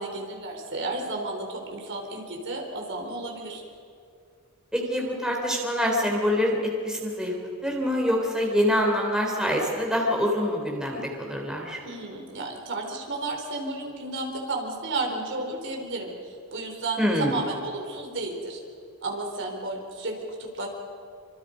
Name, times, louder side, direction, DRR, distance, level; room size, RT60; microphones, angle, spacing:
voice 1, 0.0-3.6 11.8-18.6 19.0-20.7, right 2 dB, 60° right, 1 dB, 4.1 m, -32 dB
voice 2, 4.7-6.6 6.8-7.3 7.6-11.8 17.0-17.4, equal, 5° right, -1 dB, 3.9 m, -25 dB
28.0 x 26.0 x 5.3 m, 2.3 s
head